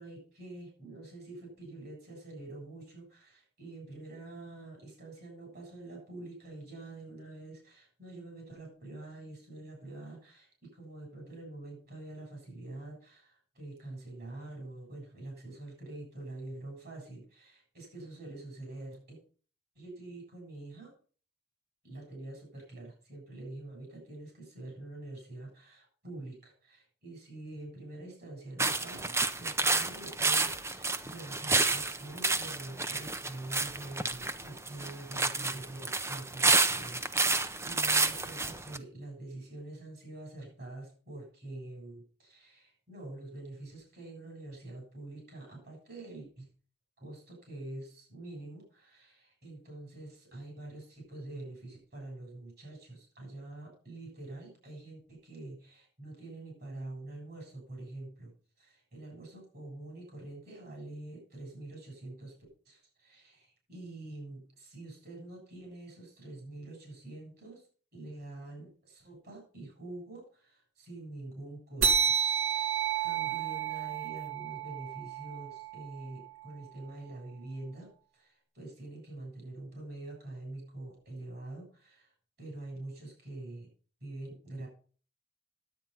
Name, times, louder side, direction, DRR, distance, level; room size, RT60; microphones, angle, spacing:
voice 1, 0.0-19.2 19.7-20.9 21.8-46.5 47.0-58.3 58.6-62.4 62.7-67.7 67.9-72.7 73.0-83.7 84.0-84.7, right 2 dB, 55° right, 0 dB, 7.7 m, -46 dB
sound 1, 28.6-38.8, right 3 dB, 15° right, 0.6 m, -30 dB
sound 2, 71.8-76.7, right 7 dB, 75° right, 2.9 m, -31 dB
10.5 x 8.6 x 5.7 m, 0.41 s
head